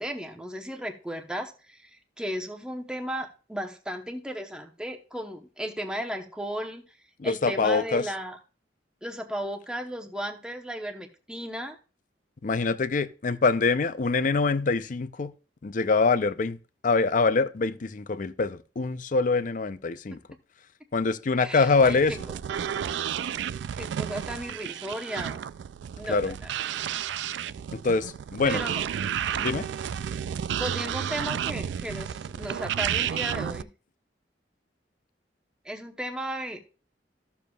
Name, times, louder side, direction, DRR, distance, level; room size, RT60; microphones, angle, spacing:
voice 1, 0.0-6.9 7.2-8.4 9.0-11.8 21.4-22.0 23.8-25.4 26.0-26.5 28.4-28.8 30.6-33.7 35.6-36.6, equal, 5° right, 0.9 m, -35 dB
voice 2, 7.2-8.1 12.4-15.3 15.6-16.6 16.8-20.2 20.9-22.2 26.0-26.3 27.7-28.6 29.4-29.7, left 4 dB, 45° left, 0.5 m, -24 dB
sound 1, 21.7-33.6, right 9 dB, 75° right, 0.3 m, -32 dB
13.5 x 7.0 x 2.3 m
head